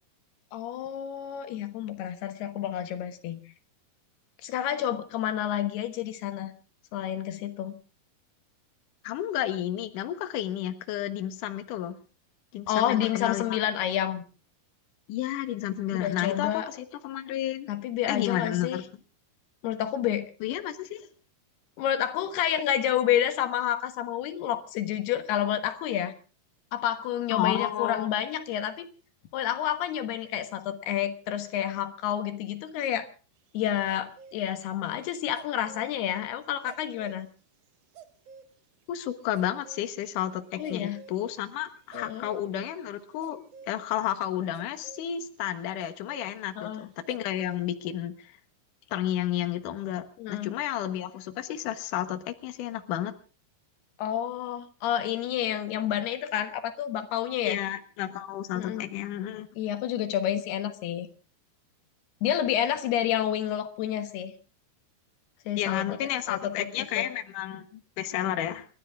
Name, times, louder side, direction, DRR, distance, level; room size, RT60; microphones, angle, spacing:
voice 1, 0.5-3.4 4.4-6.5 6.9-7.8 12.7-14.2 16.0-16.7 17.7-18.8 19.6-20.3 21.8-26.1 26.7-28.9 29.3-33.1 33.5-37.3 40.6-41.0 41.9-42.3 46.6-46.8 50.2-50.6 54.0-57.6 58.5-58.9 59.6-61.1 62.2-64.3 65.5-66.0 66.3-67.1, left 10 dB, 85° left, 9 dB, 3.4 m, -29 dB
voice 2, 9.0-12.0 12.5-13.4 15.1-17.7 18.1-18.8 20.4-21.1 27.3-28.1 38.9-48.3 48.9-53.1 57.4-59.5 65.6-68.7, left 12 dB, 65° left, 8 dB, 2.6 m, -31 dB
sound 1, 33.9-34.4 35.3-35.9 36.7-37.2 37.9-38.5 39.2-39.9 40.6-41.5 41.9-42.5 43.2-43.9 44.2-46.3 47.1-47.7, right 6 dB, 90° right, 1.4 m, -49 dB
29.5 x 12.5 x 3.6 m, 0.37 s
omnidirectional pair, 4.5 m